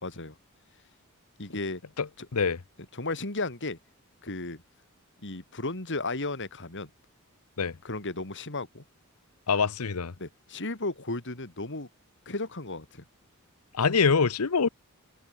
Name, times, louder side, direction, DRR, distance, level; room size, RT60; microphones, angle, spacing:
voice 1, 0.0-0.4 1.4-1.8 2.2-2.3 2.9-3.8 4.2-4.6 5.2-6.9 7.8-8.8 10.2-11.9 12.3-13.0, left 2 dB, 60° left, 3.7 m, -34 dB
voice 2, 9.5-10.1 13.7-14.7, left 5 dB, 90° left, 0.8 m, -24 dB
head